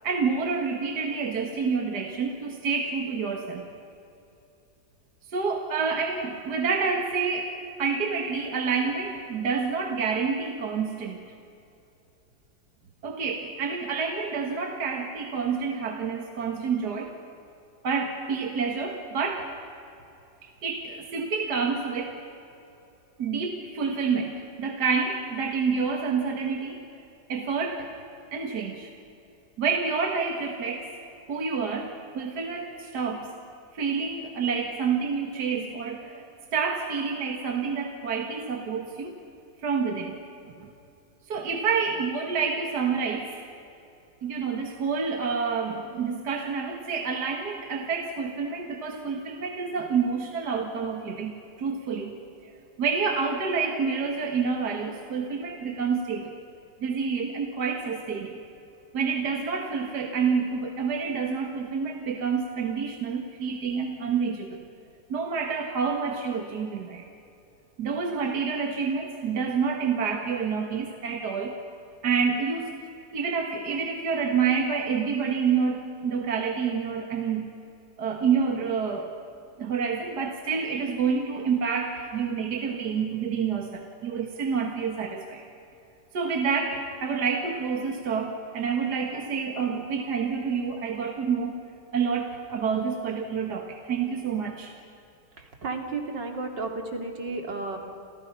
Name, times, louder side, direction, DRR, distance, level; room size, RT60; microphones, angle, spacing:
voice 1, 0.0-3.7 5.3-11.2 13.0-17.1 17.8-19.5 20.4-22.2 23.2-26.8 27.3-27.9 28.3-28.9 29.6-31.0 31.3-33.3 33.7-39.2 39.6-40.2 40.6-40.7 41.3-43.5 44.2-52.5 52.8-56.3 56.8-58.4 58.9-64.6 65.1-67.1 67.8-71.5 72.0-72.7 73.1-77.5 78.0-79.1 79.6-85.4 86.1-91.5 91.9-94.7, right 5 dB, 65° right, 3 dB, 2.2 m, -28 dB
voice 2, 95.4-97.8, right 3 dB, 85° right, 3 dB, 3.4 m, -33 dB
29.5 x 28.5 x 5.8 m, 2.8 s
omnidirectional pair, 1.9 m